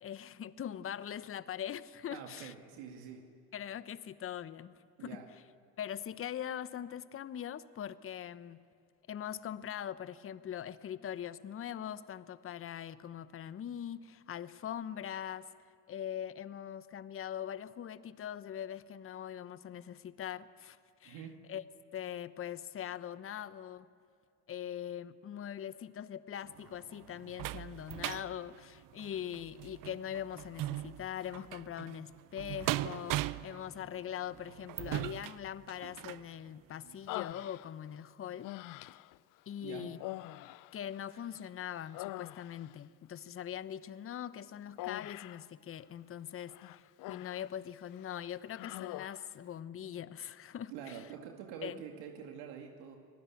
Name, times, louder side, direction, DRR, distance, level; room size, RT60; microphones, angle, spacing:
voice 1, 0.0-2.5 3.5-5.2 5.8-8.6 9.1-15.5 15.9-21.2 21.5-21.6 21.9-23.9 24.5-38.5 39.5-40.0 40.7-51.0 51.6-51.8, left 10 dB, 30° left, 15 dB, 0.9 m, -42 dB
voice 2, 2.1-3.3 5.0-5.3 21.0-21.4 39.6-39.9 50.7-53.0, right 8 dB, 60° right, 3 dB, 2.4 m, -46 dB
sound 1, 26.4-36.3 36.8-36.9 37.3-37.4, right 15 dB, 45° right, 0.8 m, -40 dB
Human voice, 37.1-38.0 38.4-39.2 40.0-41.4 41.7-42.8 44.8-45.5 46.5-47.5 47.9-48.1 48.5-49.3, left 19 dB, 45° left, 0.6 m, -44 dB
25.0 x 19.0 x 8.6 m, 2.2 s
hypercardioid pair, 75°, 47 cm